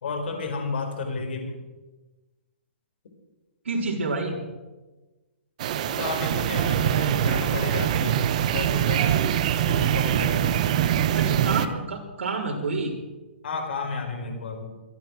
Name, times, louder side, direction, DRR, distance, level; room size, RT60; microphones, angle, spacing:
voice 1, 0.0-1.6 5.9-8.2 8.4-9.4 9.7-10.6 11.6-11.8 13.4-14.7, left 4 dB, 55° left, 4 dB, 4.6 m, -32 dB
voice 2, 3.6-4.4 11.1-12.9, right 3 dB, 90° right, -2 dB, 4.0 m, -28 dB
sound 1, 5.6-11.7, right 10 dB, 35° right, 0.9 m, -23 dB
24.5 x 9.2 x 6.3 m, 1.2 s
hypercardioid pair, 175°, 7 cm